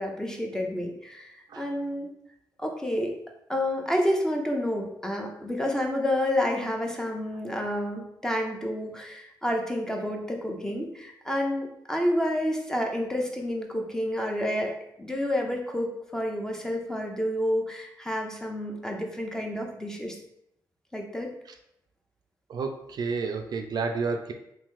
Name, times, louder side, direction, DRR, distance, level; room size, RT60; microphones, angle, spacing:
voice 1, 0.0-2.1 2.6-3.1 3.5-14.7 15.0-20.2 20.9-21.3, left 1 dB, 5° left, 1 dB, 0.7 m, -29 dB
voice 2, 22.5-24.3, right 4 dB, 60° right, 4 dB, 0.4 m, -30 dB
3.0 x 2.7 x 3.6 m, 0.78 s
cardioid pair, 75°, 8 cm